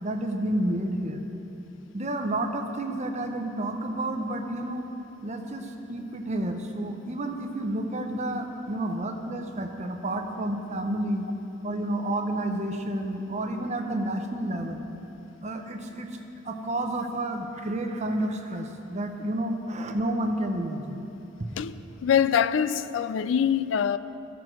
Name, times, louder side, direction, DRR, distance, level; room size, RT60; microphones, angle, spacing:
voice 1, 0.0-1.2 1.9-4.8 5.2-11.3 11.6-14.8 15.4-16.1 16.4-21.0, right 1 dB, 35° right, 0.7 m, -30 dB
voice 2, 22.0-24.0, left 8 dB, 70° left, 0.3 m, -24 dB
13.5 x 4.6 x 6.2 m
head